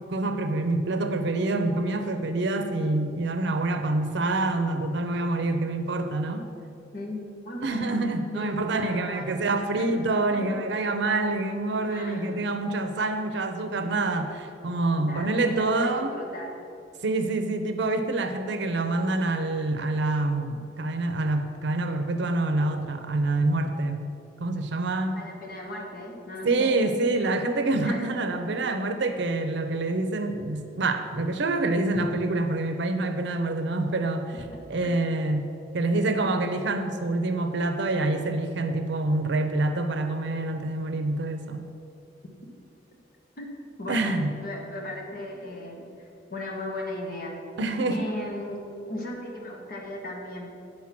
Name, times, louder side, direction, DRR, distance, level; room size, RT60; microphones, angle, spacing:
voice 1, 0.1-6.5 7.6-16.1 17.0-24.1 24.4-25.2 26.4-34.3 34.7-41.7 43.9-44.4 47.6-48.1, right 2 dB, 70° right, 7 dB, 0.6 m, -26 dB
voice 2, 7.4-8.0 8.3-9.3 9.7-9.9 10.3-10.6 11.9-12.4 15.0-16.5 25.1-26.7 27.8-28.1 34.5-34.9 43.4-43.5 43.8-44.2 44.4-45.9 46.3-47.4 47.9-48.6 48.9-50.5, left 1 dB, 55° left, 0 dB, 1.3 m, -37 dB
8.7 x 4.5 x 5.9 m, 2.6 s
head